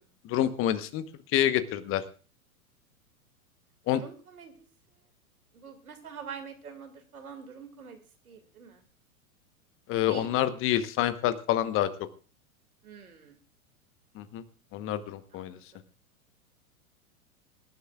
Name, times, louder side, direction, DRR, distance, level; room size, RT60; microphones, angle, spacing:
voice 1, 0.2-1.0 1.3-2.0 3.9-4.0 9.9-11.9 14.2-14.4 14.7-15.6, left 12 dB, 30° left, 12 dB, 1.1 m, -27 dB
voice 2, 3.9-4.5 5.5-8.8 10.1-10.3 12.8-13.4 15.3-15.8, right 6 dB, 75° right, 6 dB, 2.5 m, -45 dB
24.5 x 11.5 x 2.4 m, 0.37 s
figure-of-eight pair, 100°, 43 cm